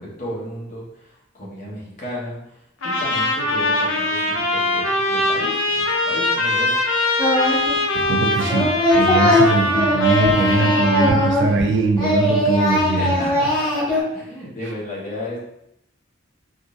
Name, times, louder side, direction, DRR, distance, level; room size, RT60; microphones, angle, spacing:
voice 1, 0.0-6.8 13.0-15.4, left 1 dB, 40° left, -6 dB, 1.1 m, -33 dB
Trumpet, 2.8-11.4, left 2 dB, 75° left, 0.8 m, -22 dB
Singing, 7.2-7.8 8.0-11.7 11.9-14.0, left 1 dB, 20° left, 1.0 m, -19 dB
voice 2, 8.1-13.3, right 3 dB, 60° right, 3 dB, 0.4 m, -21 dB
3.7 x 2.6 x 2.5 m, 0.79 s
head